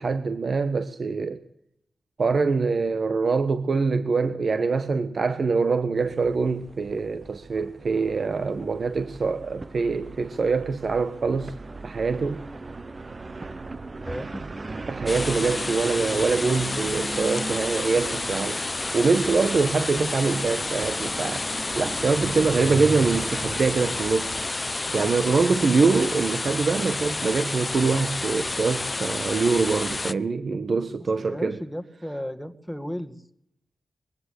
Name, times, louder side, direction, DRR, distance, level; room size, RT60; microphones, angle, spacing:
voice 1, 0.0-1.4 2.2-11.5 11.8-12.4 14.9-18.6 18.9-24.4 24.9-31.6, right 4 dB, 55° right, 1.3 m, -24 dB
sound 1, 6.0-24.5, right 3 dB, 35° right, 1.0 m, -38 dB
voice 2, 14.0-14.4 30.7-33.2, equal, ahead, 1.9 m, -35 dB
sound 2, 15.1-30.1, left 2 dB, 25° left, 0.7 m, -30 dB
23.0 x 16.0 x 8.4 m
wide cardioid pair, 95°, 0 cm